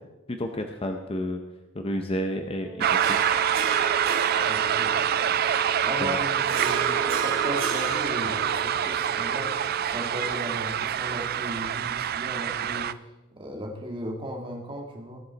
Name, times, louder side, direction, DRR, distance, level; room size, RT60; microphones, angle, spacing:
voice 1, 0.3-1.4 1.7-3.2 6.0-6.2, equal, 30° left, 5 dB, 0.7 m, -30 dB
Wind instrument woodwind instrument, 2.6-10.4, right 4 dB, ahead, 3.4 m, -41 dB
sound 1, 2.8-12.9, right 9 dB, 50° right, 0.4 m, -26 dB
Harp, 2.8-11.5, right 5 dB, 90° right, 1.4 m, -35 dB
voice 2, 4.5-5.3 5.8-9.5 9.8-12.9 13.4-15.2, equal, 25° right, 1 dB, 1.9 m, -36 dB
18.5 x 7.8 x 4.0 m, 1.1 s
head